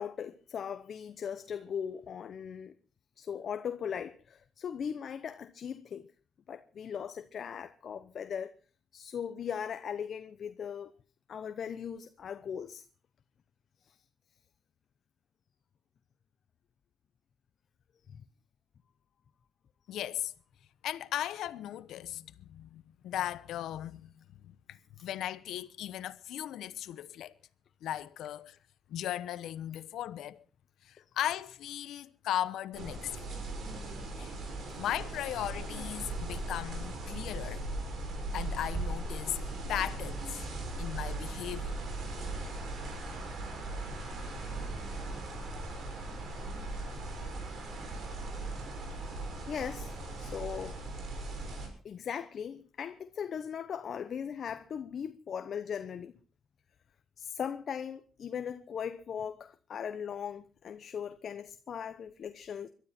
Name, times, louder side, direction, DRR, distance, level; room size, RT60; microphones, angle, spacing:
voice 1, 0.0-2.7 3.2-6.1 6.5-8.5 8.9-10.9 11.3-12.8 13.8-14.0 18.1-18.2 25.0-25.1 36.3-36.4 49.5-50.8 51.8-56.2 57.2-62.7, left 7 dB, 55° left, 0.9 m, -39 dB
voice 2, 19.9-20.3 20.8-24.1 24.4-27.3 27.8-28.6 28.9-30.4 30.8-33.3 34.2-34.3 34.8-37.6 38.3-39.4 39.7-40.4 40.8-41.7, left 12 dB, 80° left, 0.9 m, -37 dB
sound 1, 32.7-51.7, right 2 dB, 60° right, 6.4 m, -38 dB
22.5 x 12.5 x 4.4 m
cardioid pair, 90°, 0 cm